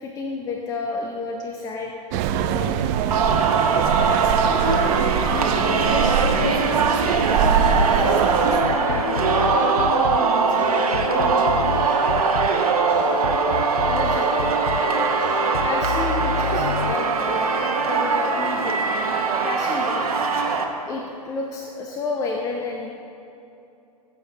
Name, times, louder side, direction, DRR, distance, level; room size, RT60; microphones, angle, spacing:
voice 1, 0.0-2.8 13.8-14.5 15.6-17.4 17.9-18.9 19.4-20.1 20.9-22.9, left 3 dB, 15° left, 1 dB, 0.7 m, -30 dB
sound 1, 2.1-8.6, right 8 dB, 25° right, 0.4 m, -23 dB
Singing, 3.1-20.6, right 5 dB, 65° right, 1.1 m, -21 dB
voice 2, 4.4-11.8, left 2 dB, 50° left, -1 dB, 2.5 m, -31 dB
sound 2, 7.7-17.8, left 6 dB, 85° left, 0.4 m, -29 dB
17.0 x 7.5 x 2.9 m, 2.8 s
figure-of-eight pair, 115°, 21 cm